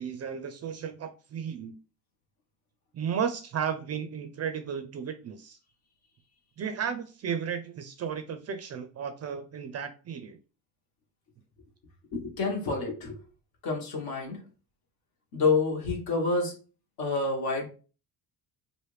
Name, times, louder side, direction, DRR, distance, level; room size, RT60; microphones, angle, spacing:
voice 1, 0.0-1.7 2.9-5.6 6.6-10.4, right 7 dB, 40° right, 8 dB, 0.4 m, -34 dB
voice 2, 12.1-13.2 13.6-14.4 15.3-16.5 17.0-17.7, left 3 dB, 60° left, 1 dB, 1.3 m, -28 dB
3.2 x 2.6 x 3.2 m, 0.36 s
cardioid pair, 130°, 42 cm